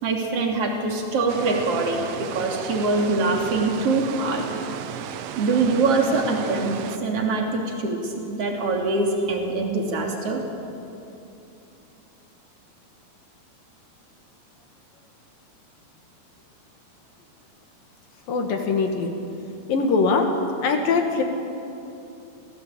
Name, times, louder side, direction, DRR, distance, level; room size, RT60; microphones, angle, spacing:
voice 1, 0.0-4.4 5.4-10.4, right 3 dB, 40° right, 1 dB, 3.4 m, -24 dB
sound 1, 1.3-7.0, right 9 dB, 90° right, 3.2 m, -34 dB
voice 2, 18.3-19.1 19.7-20.3 20.6-21.2, left 4 dB, 60° left, 4 dB, 3.2 m, -22 dB
26.5 x 17.5 x 8.7 m, 2.8 s
omnidirectional pair, 5.0 m